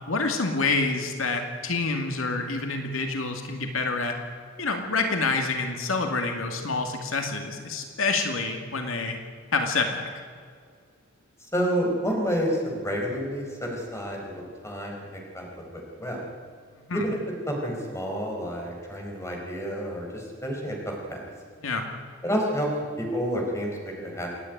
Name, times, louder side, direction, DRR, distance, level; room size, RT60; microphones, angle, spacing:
voice 1, 0.0-4.2 4.6-9.2 9.5-10.1 16.9-17.1 21.6-21.8, left 3 dB, 85° left, 4 dB, 2.3 m, -27 dB
voice 2, 11.5-16.2 16.9-17.2 17.5-21.2 22.2-22.7 23.0-24.3, equal, 15° left, 0 dB, 4.5 m, -29 dB
28.5 x 10.0 x 9.3 m, 2.1 s
head